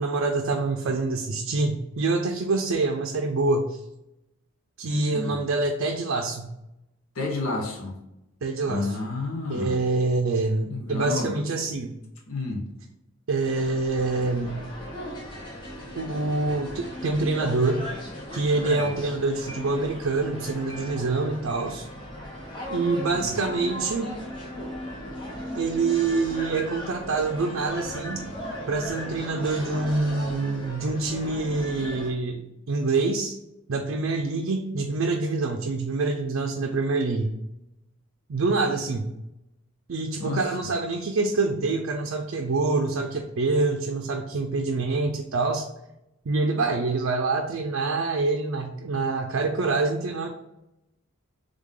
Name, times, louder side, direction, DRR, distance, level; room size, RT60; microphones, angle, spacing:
voice 1, 0.0-3.8 4.8-6.5 8.4-9.0 9.5-12.0 13.3-14.6 16.0-17.8 18.3-21.9 22.7-24.1 25.6-28.2 28.7-33.3 33.7-37.3 38.3-39.1 39.9-45.7 46.3-50.3, right 3 dB, 65° right, 3 dB, 0.4 m, -26 dB
voice 2, 4.9-5.4 7.1-8.0 8.7-9.8 10.6-11.3 12.3-12.7 18.6-18.9 23.1-23.3 40.2-40.4, left 3 dB, 85° left, 1 dB, 1.0 m, -31 dB
sound 1, 13.4-32.1, left 1 dB, 20° left, 1.0 m, -37 dB
3.7 x 3.4 x 3.7 m, 0.89 s
head